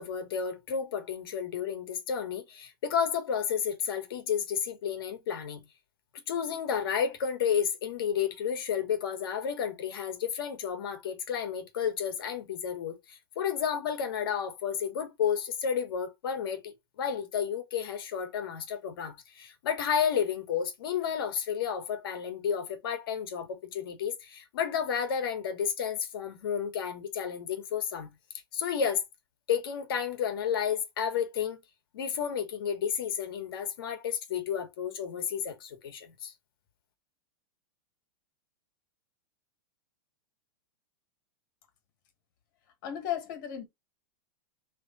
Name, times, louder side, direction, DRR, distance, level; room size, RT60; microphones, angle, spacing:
voice 1, 0.0-5.6 6.3-28.1 28.5-29.0 29.5-31.6 31.9-36.3, left 7 dB, 75° left, 1.4 m, -31 dB
voice 2, 42.8-43.7, left 10 dB, 55° left, 1.7 m, -34 dB
3.6 x 3.3 x 4.0 m
supercardioid pair, 145°, 12 cm